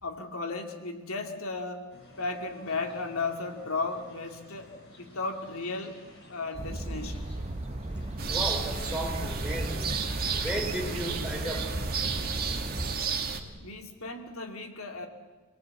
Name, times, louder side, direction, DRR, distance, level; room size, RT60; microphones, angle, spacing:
voice 1, 0.0-4.7 5.0-6.0 6.3-7.3 13.6-15.1, left 3 dB, 75° left, 4 dB, 2.5 m, -35 dB
sound 1, 1.9-12.4, left 1 dB, 60° left, 7.2 m, -52 dB
sound 2, 6.5-13.0, right 1 dB, 30° right, 0.8 m, -35 dB
sound 3, 8.2-13.4, right 5 dB, 45° right, 2.2 m, -33 dB
voice 2, 8.3-9.9 10.3-11.8, right 1 dB, 5° right, 1 dB, 3.8 m, -34 dB
27.0 x 20.0 x 8.5 m, 1.4 s
head